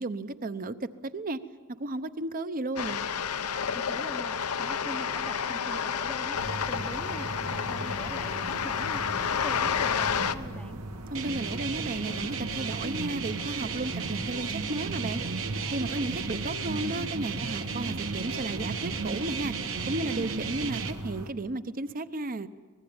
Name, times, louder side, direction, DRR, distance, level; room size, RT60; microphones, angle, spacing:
voice 1, 0.0-1.4 1.7-3.0 11.1-15.2 15.7-19.5 19.9-22.5, right 2 dB, 40° right, 12 dB, 0.8 m, -34 dB
sound 1, 2.8-10.4, left 7 dB, 85° left, 0.8 m, -30 dB
voice 2, 3.7-9.0 9.4-10.8 16.1-16.2, equal, 5° left, 8 dB, 0.7 m, -43 dB
sound 2, 6.3-21.3, right 1 dB, 90° right, 1.8 m, -39 dB
sound 3, 11.2-20.9, right 5 dB, 65° right, 1.5 m, -34 dB
24.5 x 20.0 x 8.9 m, 1.5 s
head